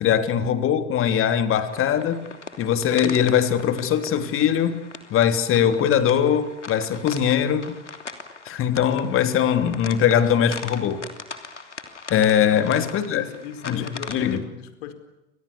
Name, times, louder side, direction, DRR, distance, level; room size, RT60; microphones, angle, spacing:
voice 1, 0.0-2.2 2.6-4.8 5.1-7.8 8.4-11.0 12.1-13.2 13.6-14.4, left 9 dB, 35° left, 8 dB, 3.4 m, -21 dB
sound 1, 1.7-14.4, left 4 dB, 85° left, 3.1 m, -40 dB
voice 2, 12.1-12.8 13.1-14.9, left 8 dB, 60° left, 9 dB, 4.7 m, -38 dB
30.0 x 26.0 x 7.2 m, 0.96 s
figure-of-eight pair, 80°, 35 cm